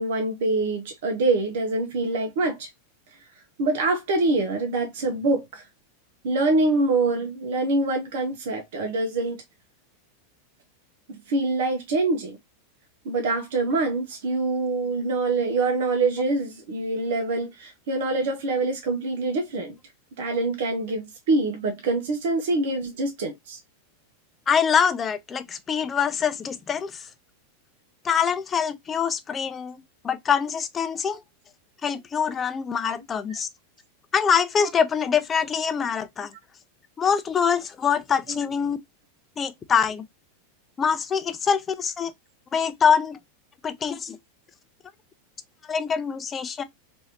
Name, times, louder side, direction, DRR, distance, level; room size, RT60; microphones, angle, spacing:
voice 1, 0.0-2.7 3.6-5.6 6.2-9.4 11.1-12.4 13.0-19.7 20.2-23.6 32.8-32.9 38.3-38.4, right 2 dB, 70° right, 0.8 m, -25 dB
voice 2, 24.5-27.1 28.0-29.8 30.0-31.2 31.8-33.5 34.1-36.3 37.0-38.8 39.4-40.0 40.8-42.1 42.5-43.2 43.6-44.2 45.7-46.6, left 7 dB, 25° left, 0.5 m, -24 dB
3.1 x 2.6 x 2.8 m
hypercardioid pair, 105°, 0 cm